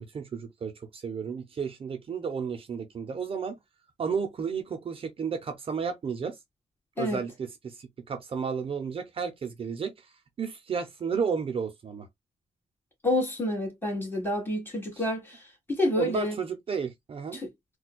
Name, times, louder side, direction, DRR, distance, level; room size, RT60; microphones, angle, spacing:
voice 1, 0.0-3.5 4.0-6.4 7.0-9.9 10.4-12.1 16.0-17.4, right 6 dB, 50° right, 0.7 m, -32 dB
voice 2, 13.0-15.4 15.7-16.3 17.3-17.5, left 1 dB, 15° left, 1.9 m, -28 dB
4.2 x 2.3 x 2.2 m
cardioid pair, 110°, 13 cm